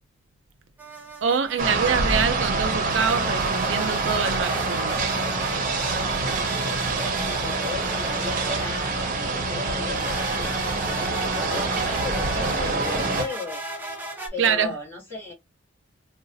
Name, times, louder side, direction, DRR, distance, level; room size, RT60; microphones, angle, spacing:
sound 1, 0.8-1.8 2.9-9.3 9.9-14.3, right 2 dB, 10° right, 0.8 m, -35 dB
voice 1, 1.2-5.0 14.4-14.7, right 6 dB, 70° right, 0.5 m, -25 dB
sound 2, 1.6-13.2, right 3 dB, 45° right, 1.0 m, -26 dB
voice 2, 7.1-13.6 14.3-15.3, left 4 dB, 10° left, 2.1 m, -36 dB
3.9 x 2.5 x 2.5 m
head